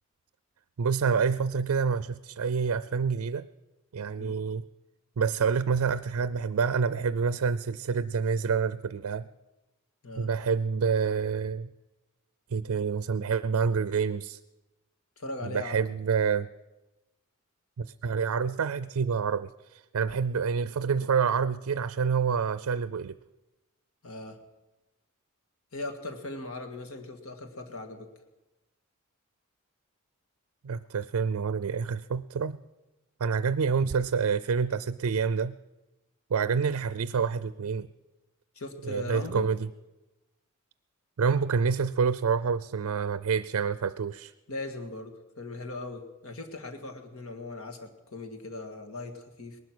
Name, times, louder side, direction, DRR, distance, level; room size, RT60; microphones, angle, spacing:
voice 1, 0.8-3.5 3.9-4.6 5.2-9.3 10.2-11.7 12.5-14.4 15.4-16.5 17.8-23.2 30.6-32.6 33.2-35.5 36.3-37.9 38.8-39.7 41.2-44.3, right 6 dB, 90° right, 15 dB, 0.4 m, -27 dB
voice 2, 15.2-15.9 24.0-24.4 25.7-28.1 38.6-39.5 44.5-49.6, left 2 dB, 70° left, 4 dB, 1.9 m, -39 dB
19.0 x 12.0 x 6.2 m, 1.0 s
head